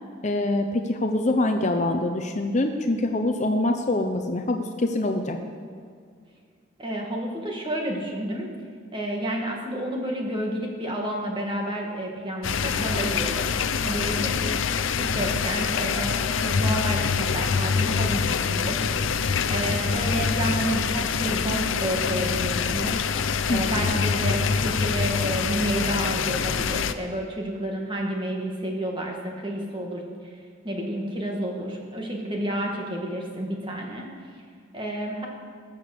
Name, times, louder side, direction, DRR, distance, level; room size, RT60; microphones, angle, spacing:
voice 1, 0.2-5.4 23.5-23.6, left 2 dB, 35° left, 5 dB, 0.7 m, -24 dB
voice 2, 6.8-8.5 8.9-13.5 13.8-14.5 15.0-18.8 19.5-23.0 23.5-34.1 34.7-35.3, right 1 dB, 25° right, 0 dB, 1.9 m, -30 dB
sound 1, 12.4-26.9, left 6 dB, 70° left, 0.6 m, -25 dB
20.5 x 7.0 x 6.7 m, 2.1 s
head